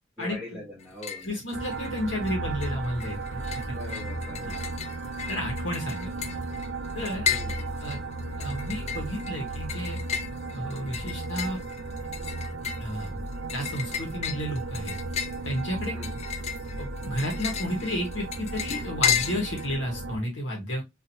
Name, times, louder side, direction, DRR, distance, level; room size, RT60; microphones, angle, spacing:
voice 1, 0.2-1.4 3.6-4.6 7.3-7.7 15.9-16.1, left 2 dB, 10° right, 1.0 m, -42 dB
sound 1, 0.8-1.3 1.6-2.3 2.6-19.7, left 8 dB, 35° left, 0.3 m, -34 dB
voice 2, 1.2-3.4 3.7-3.8 4.4-4.6 5.3-6.1 6.9-7.3 7.8-8.0 8.4-10.0 10.5-11.6 12.8-13.3 13.5-14.9 15.4-16.0 16.7-20.8, equal, 85° left, 1.2 m, -32 dB
sound 2, 1.5-20.2, right 2 dB, 60° right, 0.4 m, -35 dB
2.9 x 2.7 x 2.6 m
head